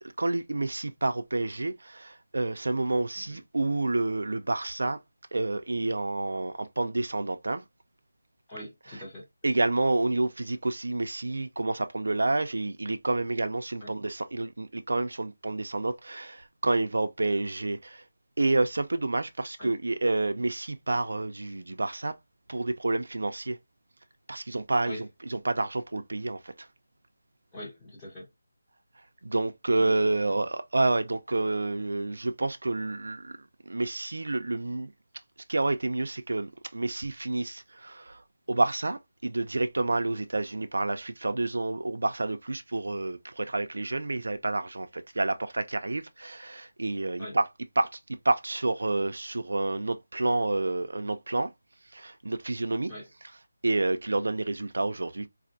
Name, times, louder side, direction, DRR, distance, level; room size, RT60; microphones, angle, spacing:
voice 1, 0.2-5.0 5.3-7.6 8.9-9.0 9.4-18.0 18.4-22.2 22.5-23.6 24.3-26.7 29.2-33.3 33.7-34.9 35.5-47.5 47.8-51.5 51.9-52.9 53.6-55.3, right 2 dB, 65° right, 0.4 m, -29 dB
voice 2, 8.5-9.3 13.8-13.9 19.6-19.7 24.9-25.0 27.5-28.3 47.2-47.4 52.9-53.1, left 1 dB, 10° left, 1.0 m, -42 dB
4.0 x 2.5 x 2.6 m
figure-of-eight pair, 180°, 0 cm